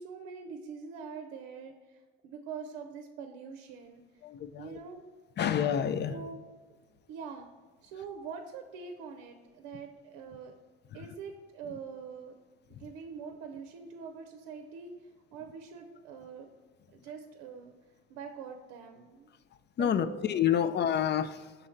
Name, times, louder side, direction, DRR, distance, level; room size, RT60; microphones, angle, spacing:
voice 1, 0.0-4.0 4.6-5.0 6.1-6.4 6.7-6.8 7.1-7.5 7.8-10.5 10.9-12.4 12.7-14.9 15.3-16.5 16.9-17.7 18.1-19.3 19.8-20.3 20.6-20.7, right 6 dB, 70° right, 5 dB, 0.6 m, -44 dB
voice 2, 4.2-4.8 5.4-6.1 10.9-11.1 12.7-12.9 19.8-21.5, left 9 dB, 35° left, 13 dB, 0.4 m, -29 dB
6.2 x 3.9 x 4.3 m, 1.4 s
hypercardioid pair, 65°, 31 cm